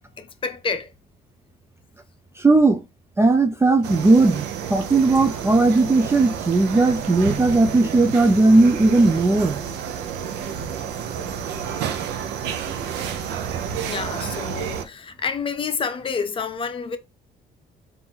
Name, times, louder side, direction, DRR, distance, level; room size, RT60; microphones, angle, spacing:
voice 1, 0.2-0.9 13.0-13.1 13.9-17.0, left 5 dB, 30° left, 0.7 m, -29 dB
voice 2, 2.4-2.8 3.2-9.6, right 2 dB, 15° right, 0.4 m, -17 dB
sound 1, 3.8-14.8, right 8 dB, 85° right, 0.7 m, -30 dB
3.8 x 2.7 x 4.3 m
cardioid pair, 110°, 17 cm